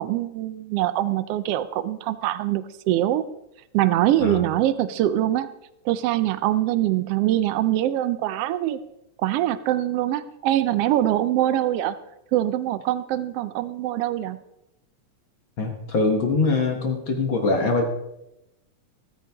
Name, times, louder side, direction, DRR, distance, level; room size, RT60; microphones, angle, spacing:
voice 1, 0.0-3.2 3.7-5.5 5.9-8.8 9.2-12.0 12.3-14.4, right 13 dB, 80° right, 13 dB, 1.3 m, -23 dB
voice 2, 15.6-17.9, left 3 dB, 50° left, 3 dB, 1.7 m, -23 dB
14.0 x 14.0 x 3.5 m, 0.85 s
omnidirectional pair, 3.4 m